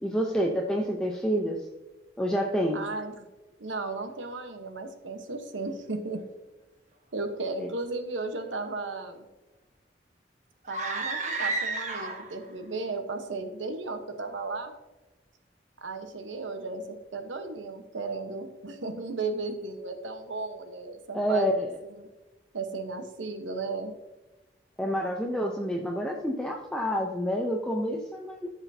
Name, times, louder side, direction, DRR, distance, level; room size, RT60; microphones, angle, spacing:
voice 1, 0.0-1.7 2.2-2.8 7.6-7.7 21.1-21.7 24.8-28.5, equal, 5° left, 0 dB, 0.6 m, -28 dB
voice 2, 2.7-3.3 3.6-6.2 7.1-9.2 10.7-14.7 15.8-22.1 22.5-24.0, right 3 dB, 85° right, 7 dB, 1.1 m, -35 dB
sound 1, 10.6-12.4, right 3 dB, 40° right, 1.1 m, -31 dB
14.0 x 5.9 x 2.7 m, 1.1 s
head